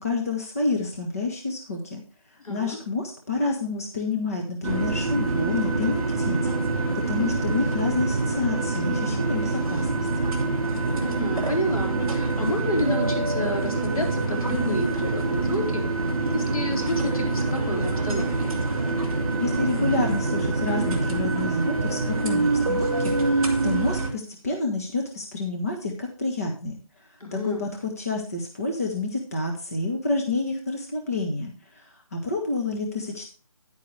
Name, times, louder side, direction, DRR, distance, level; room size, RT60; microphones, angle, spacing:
voice 1, 0.0-2.0 2.5-6.4 7.1-10.1 19.4-26.8 27.3-33.3, left 3 dB, 25° left, 1 dB, 1.3 m, -29 dB
voice 2, 2.4-2.8 11.0-15.8 16.3-18.6 27.2-27.6, left 1 dB, 80° left, 1 dB, 4.4 m, -30 dB
sound 1, 4.6-24.1, right 3 dB, 10° right, 1.7 m, -25 dB
10.5 x 9.3 x 3.3 m, 0.35 s
figure-of-eight pair, 175°, 18 cm